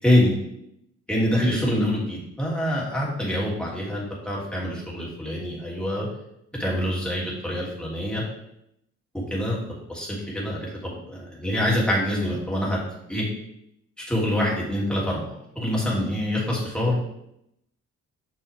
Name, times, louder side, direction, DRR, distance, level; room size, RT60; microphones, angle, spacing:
voice 1, 0.0-0.3 1.1-6.1 6.6-8.2 9.1-9.6 9.9-10.1 10.3-13.3 14.0-17.0, left 1 dB, 5° left, -5 dB, 3.0 m, -25 dB
6.5 x 6.2 x 3.7 m, 0.78 s
cardioid pair, 90°, 30 cm